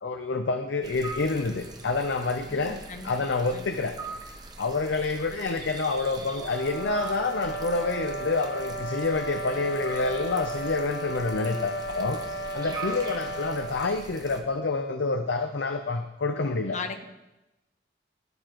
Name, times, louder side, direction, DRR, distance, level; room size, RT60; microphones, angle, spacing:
voice 1, 0.0-4.0 4.6-12.2 12.5-16.8, left 3 dB, 85° left, 6 dB, 0.7 m, -28 dB
sound 1, 0.8-14.4, right 3 dB, 20° right, 0.9 m, -42 dB
voice 2, 2.5-3.1 3.5-3.7 16.7-17.1, left 4 dB, 40° left, 7 dB, 0.8 m, -37 dB
sound 2, 6.3-13.8, right 1 dB, 65° left, 1.1 m, -35 dB
11.5 x 11.0 x 3.1 m, 0.99 s
head